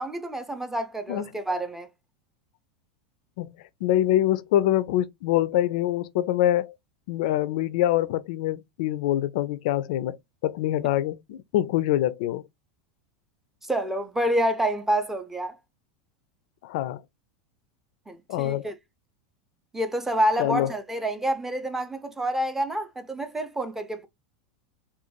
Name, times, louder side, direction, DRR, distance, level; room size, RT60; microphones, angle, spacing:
voice 1, 0.0-1.9 13.7-15.5 18.1-18.7 19.7-24.1, right 1 dB, 10° right, 0.5 m, -28 dB
voice 2, 3.8-6.7 7.1-10.2 10.4-12.4 16.6-17.0 18.3-18.7 20.4-20.7, left 13 dB, 70° left, 0.3 m, -25 dB
2.5 x 2.2 x 3.0 m
supercardioid pair, 120°, 4 cm